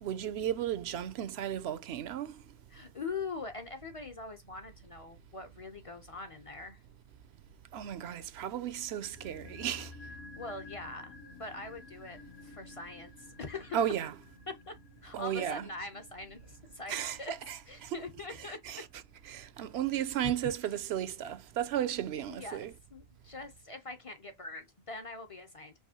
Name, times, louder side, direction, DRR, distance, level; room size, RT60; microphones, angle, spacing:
voice 1, 0.0-2.3 7.7-9.9 13.7-14.1 15.1-15.7 16.9-18.0 18.4-18.8 19.3-22.7, right 10 dB, 80° right, 0.8 m, -34 dB
voice 2, 2.7-6.8 10.4-12.2 12.4-13.1 13.4-13.8 14.5-14.7 15.0-17.3 17.7-18.6 20.0-20.3 22.3-25.7, left 3 dB, 40° left, 0.6 m, -43 dB
sound 1, 8.9-19.2 19.5-19.6, left 3 dB, 80° left, 1.7 m, -52 dB
4.8 x 2.9 x 2.7 m
omnidirectional pair, 1.1 m